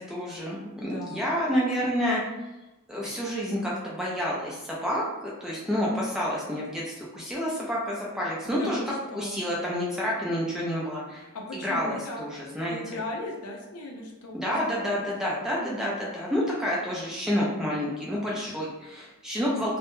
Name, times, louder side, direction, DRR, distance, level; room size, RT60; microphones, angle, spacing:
voice 1, 0.1-2.2 2.9-5.0 5.4-8.8 9.1-11.3 11.5-12.8 14.3-19.8, equal, ahead, -6 dB, 0.4 m, -29 dB
voice 2, 0.8-1.3 8.4-9.4 11.3-12.2 12.6-14.8 15.6-15.8, left 1 dB, 85° left, 0 dB, 0.5 m, -38 dB
2.2 x 2.0 x 2.9 m, 1.0 s
head